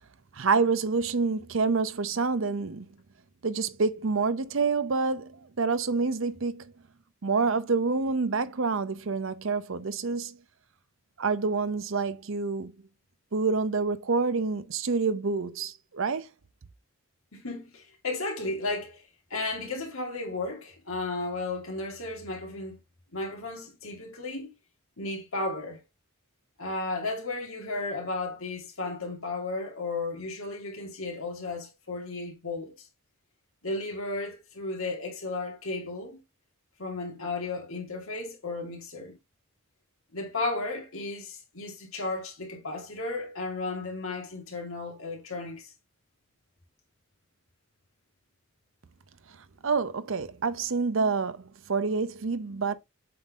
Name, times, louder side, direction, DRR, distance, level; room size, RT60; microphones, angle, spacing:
voice 1, 0.3-2.9 3.4-6.6 7.2-10.4 11.2-12.7 13.3-16.3 49.6-52.7, right 4 dB, 65° right, 0.7 m, -27 dB
voice 2, 17.3-22.8 23.1-24.5 25.0-25.8 26.6-32.9 33.6-36.2 36.8-39.2 40.1-45.7, left 3 dB, 80° left, 2.4 m, -34 dB
7.6 x 3.9 x 3.5 m
head